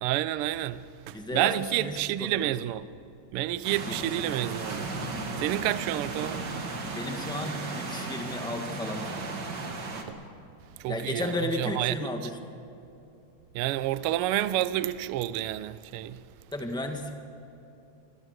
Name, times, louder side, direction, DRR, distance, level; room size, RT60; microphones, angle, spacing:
voice 1, 0.0-2.9 3.3-4.9 5.4-6.5 10.1-10.2 10.8-12.1 13.5-16.2, right 14 dB, 85° right, 1.2 m, -29 dB
voice 2, 1.1-1.5 1.8-2.0 2.3-2.5 3.9-4.0 6.9-9.3 10.9-12.4 16.5-17.1, left 1 dB, 5° left, 0.7 m, -33 dB
sound 1, 3.6-10.0, right 3 dB, 40° right, 2.2 m, -35 dB
25.5 x 20.5 x 6.5 m
omnidirectional pair, 3.3 m